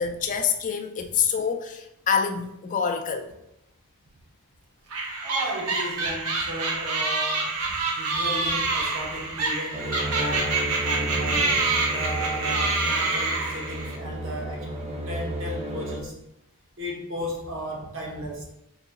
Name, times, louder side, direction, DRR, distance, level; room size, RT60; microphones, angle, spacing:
voice 1, 0.0-3.3, left 6 dB, 35° left, 5 dB, 0.3 m, -26 dB
sound 1, 4.9-14.0, right 3 dB, 80° right, 0.8 m, -27 dB
voice 2, 5.2-14.7 15.1-16.2 16.8-18.4, equal, 60° right, -2 dB, 1.1 m, -35 dB
sound 2, 9.7-16.0, right 1 dB, 30° right, 0.6 m, -33 dB
4.0 x 3.8 x 2.3 m, 0.83 s
head